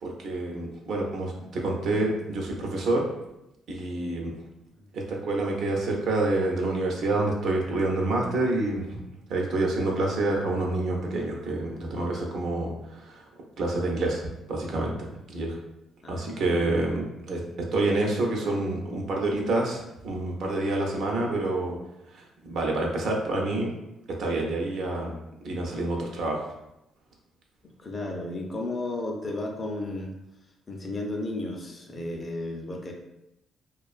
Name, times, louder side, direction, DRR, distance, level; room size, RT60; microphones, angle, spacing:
voice 1, 0.0-3.1 3.7-4.3 4.9-9.0 9.3-13.2 13.6-14.2 14.5-15.6 16.1-17.4 17.7-21.8 22.1-23.8 24.1-25.2 25.4-26.5, right 2 dB, 70° right, 0 dB, 0.6 m, -28 dB
voice 2, 16.0-16.8 27.8-30.2 30.7-32.9, left 2 dB, 35° left, 1 dB, 0.5 m, -34 dB
2.4 x 2.2 x 2.4 m, 0.87 s
cardioid pair, 90°, 0 cm